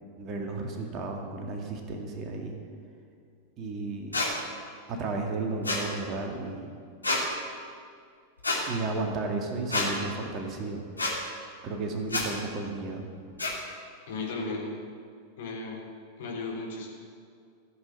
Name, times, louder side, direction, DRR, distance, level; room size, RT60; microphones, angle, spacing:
voice 1, 0.2-2.6 3.6-4.2 4.9-6.7 8.7-10.8 11.6-13.1, right 3 dB, 30° right, 2 dB, 2.0 m, -33 dB
sound 1, 4.1-4.3 5.6-5.8 7.0-7.2 8.4-8.6 9.7-9.9 11.0-11.1 12.1-12.2 13.4-13.5, left 2 dB, 80° left, 2.5 m, -27 dB
voice 2, 14.1-14.7 15.4-15.8 16.2-16.9, left 3 dB, 55° left, -3 dB, 4.0 m, -35 dB
15.0 x 8.0 x 8.8 m, 2.2 s
figure-of-eight pair, 90°, 0 cm